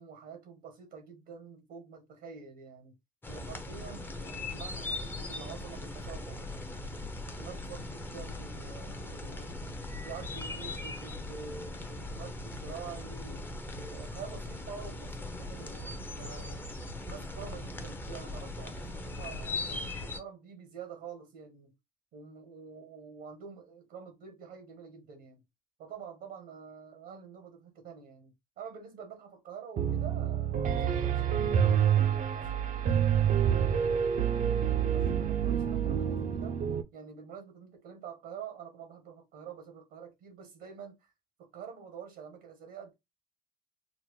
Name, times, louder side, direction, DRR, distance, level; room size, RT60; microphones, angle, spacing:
voice 1, 0.0-2.9 3.3-6.9 7.4-9.6 10.0-13.4 13.7-16.6 17.1-21.7 22.1-25.4 25.8-34.0 34.4-36.6 36.9-41.1 41.4-42.9, right 6 dB, 80° right, 1.1 m, -47 dB
sound 1, 3.2-20.2, left 2 dB, 10° left, 0.6 m, -39 dB
Piano, 29.8-36.8, right 8 dB, 50° right, 0.5 m, -27 dB
4.1 x 2.1 x 3.1 m
cardioid pair, 110°, 17 cm